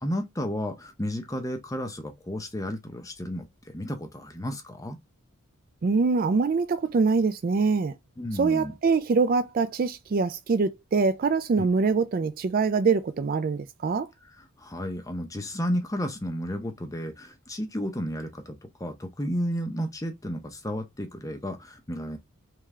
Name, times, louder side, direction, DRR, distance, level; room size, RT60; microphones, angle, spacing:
voice 1, 0.0-5.0 8.2-8.7 11.6-11.7 14.6-22.2, equal, 15° left, 0.6 m, -32 dB
voice 2, 5.8-7.9 8.3-14.1, right 4 dB, 40° right, 0.3 m, -24 dB
3.4 x 3.3 x 3.6 m
head